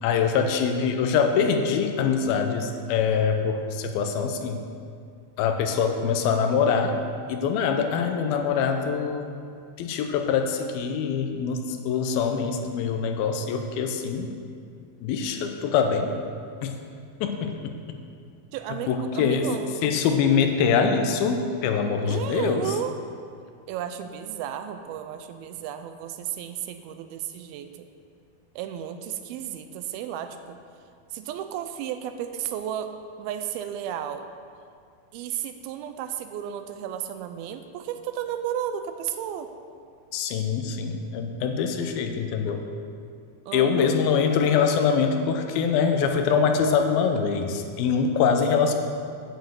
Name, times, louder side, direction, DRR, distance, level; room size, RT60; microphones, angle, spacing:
voice 1, 0.0-4.6 5.4-7.0 7.3-9.3 9.8-14.3 15.0-16.1 16.6-16.8 17.2-18.0 18.9-19.5 19.8-22.6 40.1-42.6 43.5-48.7, left 6 dB, 80° left, 6 dB, 2.5 m, -24 dB
voice 2, 18.5-19.9 22.0-23.0 23.7-27.7 28.6-30.6 31.1-32.9 33.2-34.3 35.1-39.5 43.5-44.0, right 10 dB, 85° right, 8 dB, 2.4 m, -33 dB
9.1 x 6.7 x 7.9 m, 2.3 s
omnidirectional pair, 4.5 m